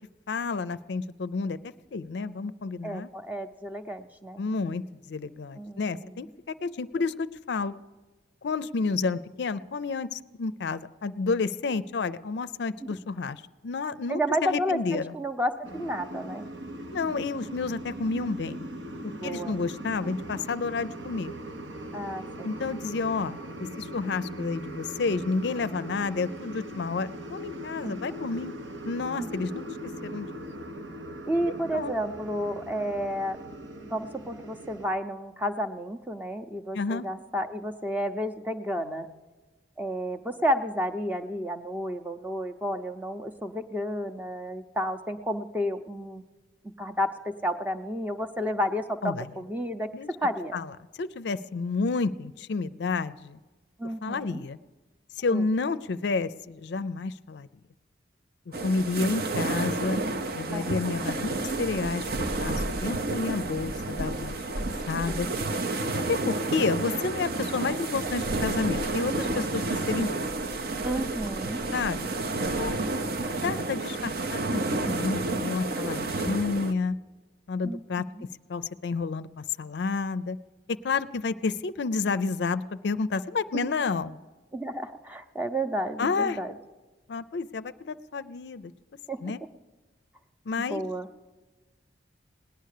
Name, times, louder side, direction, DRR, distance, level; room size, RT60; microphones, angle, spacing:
voice 1, 0.3-1.6 1.9-3.1 4.4-7.7 8.4-15.1 16.9-18.7 19.0-21.3 22.4-28.5 28.8-29.7 30.0-30.4 31.7-31.9 36.7-37.1 49.0-49.3 49.9-50.1 50.5-50.7 51.0-53.4 54.0-54.6 55.2-57.5 58.6-60.0 60.3-65.3 66.1-70.3 71.7-72.1 72.6-72.8 73.3-77.0 77.5-78.1 78.5-80.4 80.8-84.2 86.0-86.4 87.1-88.7 89.2-89.4 90.5-90.8, left 4 dB, 65° left, 14 dB, 0.4 m, -30 dB
voice 2, 2.8-4.4 5.6-6.1 14.1-16.4 19.2-19.6 21.9-22.6 27.8-28.0 29.2-29.5 31.3-33.4 33.8-39.1 39.8-46.2 46.8-50.6 53.8-54.4 55.3-55.4 60.5-60.7 65.1-65.4 70.8-71.6 77.6-78.2 83.6-83.7 84.5-86.5 89.1-89.2 90.7-91.1, equal, 10° right, 6 dB, 0.6 m, -31 dB
sound 1, 15.6-34.9, right 1 dB, 75° right, 1.0 m, -40 dB
sound 2, 58.5-76.7, right 2 dB, 55° right, 0.7 m, -30 dB
18.5 x 10.5 x 6.6 m, 1.2 s
head